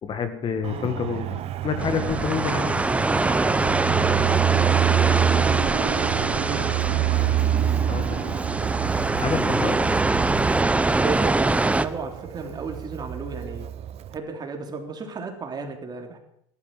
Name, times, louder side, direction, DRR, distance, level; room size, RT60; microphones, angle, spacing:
voice 1, 0.0-2.8 7.9-8.4 9.2-9.9, left 6 dB, 35° left, 9 dB, 2.0 m, -28 dB
Fixed-wing aircraft airplane, 0.6-14.1, right 11 dB, 45° right, 0.9 m, -27 dB
sound 1, 1.8-11.8, right 2 dB, 10° right, 0.8 m, -24 dB
voice 2, 4.1-7.5 11.0-13.7 14.1-16.2, right 4 dB, 30° right, 4 dB, 3.4 m, -35 dB
14.5 x 12.0 x 7.6 m, 0.73 s
hypercardioid pair, 95°, 14 cm